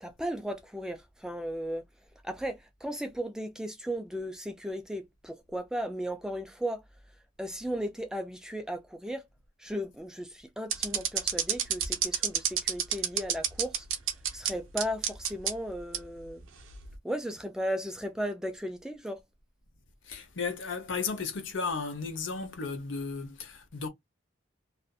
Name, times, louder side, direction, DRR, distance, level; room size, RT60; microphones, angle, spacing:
voice 1, 0.0-1.8 2.2-6.8 7.4-9.2 9.6-13.9 14.3-16.4 17.0-19.2, equal, 5° right, 0.3 m, -35 dB
sound 1, 10.7-14.5 14.8-15.5 15.9-16.0 16.7-16.9, right 9 dB, 75° right, 0.6 m, -28 dB
voice 2, 20.1-23.9, left 4 dB, 65° left, 0.8 m, -34 dB
2.5 x 2.4 x 2.3 m
head